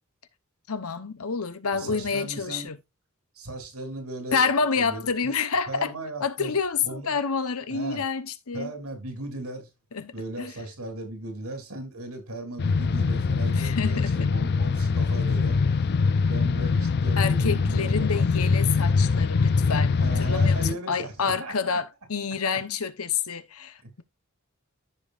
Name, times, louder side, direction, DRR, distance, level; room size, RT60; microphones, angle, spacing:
voice 1, 0.7-2.8 4.3-5.9 6.2-8.7 9.9-10.5 13.6-14.3 17.2-24.0, left 5 dB, 80° left, 1.0 m, -28 dB
voice 2, 1.7-2.7 3.3-4.5 4.7-5.0 5.7-6.6 6.8-7.2 7.7-8.0 8.5-9.7 10.1-15.6 16.3-18.6 19.9-21.8 23.8-23.9, right 2 dB, 85° right, 3.2 m, -37 dB
sound 1, 12.6-20.7, left 4 dB, 50° left, 0.4 m, -23 dB
14.5 x 5.3 x 2.5 m
head